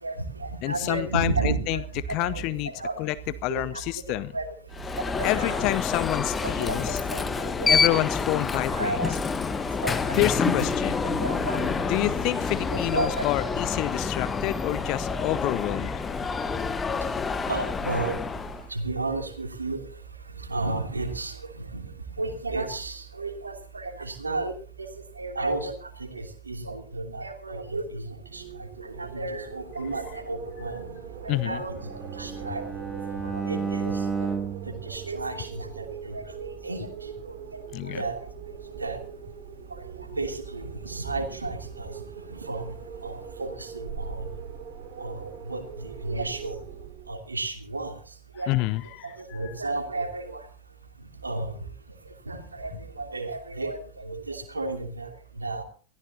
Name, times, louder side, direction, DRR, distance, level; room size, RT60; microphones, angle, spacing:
voice 1, 0.0-3.0 3.5-3.8 4.1-4.5 5.2-5.7 6.4-8.0 8.7-9.1 9.8-12.2 12.7-13.5 17.5-18.2 18.7-19.8 20.3-21.9 22.2-24.9 25.1-30.8 31.2-32.6 33.2-34.3 34.7-37.6 37.9-38.2 38.7-39.0 39.7-39.9 40.1-41.9 42.3-42.7 43.0-44.2 45.0-46.6 47.1-48.0 48.4-48.5 49.0-50.4 51.2-51.6 52.3-55.6, right 3 dB, 80° right, 5 dB, 2.8 m, -33 dB
voice 2, 0.6-1.8 2.1-2.7 3.0-3.2 3.4-4.3 5.2-7.0 7.7-9.2 10.1-10.9 11.9-16.9 31.3-31.6 37.7-38.0 48.5-49.5, left 17 dB, 40° left, 17 dB, 0.6 m, -28 dB
Alarm, 4.7-18.7, left 5 dB, 15° left, 1.2 m, -28 dB
Wind, 28.2-47.2, right 7 dB, 45° right, 4.4 m, -42 dB
Bowed string instrument, 31.8-36.0, right 6 dB, 5° right, 2.1 m, -33 dB
23.5 x 15.5 x 2.8 m, 0.41 s
figure-of-eight pair, 90°, 0 cm